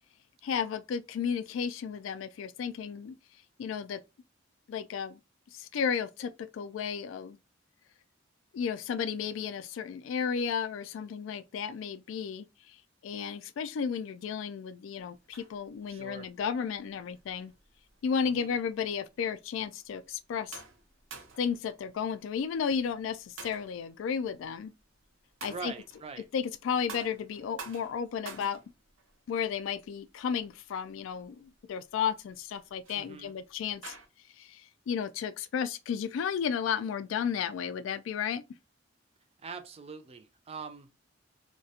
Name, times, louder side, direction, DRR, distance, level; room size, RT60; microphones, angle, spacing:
voice 1, 0.4-3.1 3.6-4.0 4.7-5.2 5.5-7.4 8.5-12.5 13.0-17.5 18.0-20.6 21.4-24.7 25.4-25.7 26.3-28.6 29.3-33.9 34.4-38.4, left 7 dB, 70° left, 0.3 m, -33 dB
sound 1, 15.0-34.1, right 5 dB, 85° right, 0.6 m, -51 dB
voice 2, 15.9-16.3 18.2-18.6 25.5-26.3 32.9-33.3 39.4-40.9, right 5 dB, 30° right, 0.4 m, -43 dB
2.4 x 2.1 x 2.7 m
head